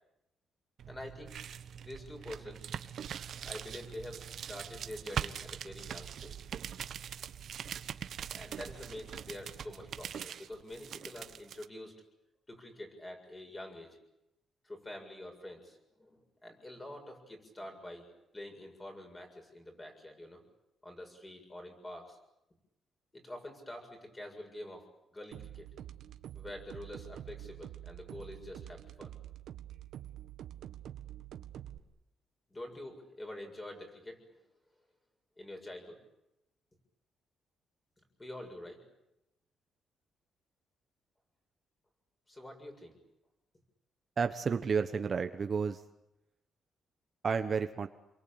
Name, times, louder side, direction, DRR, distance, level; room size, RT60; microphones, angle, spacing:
sound 1, 0.8-11.7, right 9 dB, 55° right, 1.2 m, -42 dB
voice 1, 0.9-1.4 1.7-2.6 3.4-6.4 8.3-11.9 12.5-14.0 14.6-20.4 20.8-22.2 23.1-25.7 26.3-29.2 32.5-34.4 35.4-36.0 38.2-38.8 42.3-43.0, left 1 dB, 15° left, 3 dB, 7.0 m, -46 dB
sound 2, 25.3-31.8, right 11 dB, 75° right, 1.7 m, -47 dB
voice 2, 44.2-45.8 47.2-47.9, right 5 dB, 35° right, 8 dB, 1.2 m, -31 dB
29.0 x 23.0 x 8.9 m, 0.87 s
cardioid pair, 150°, 0 cm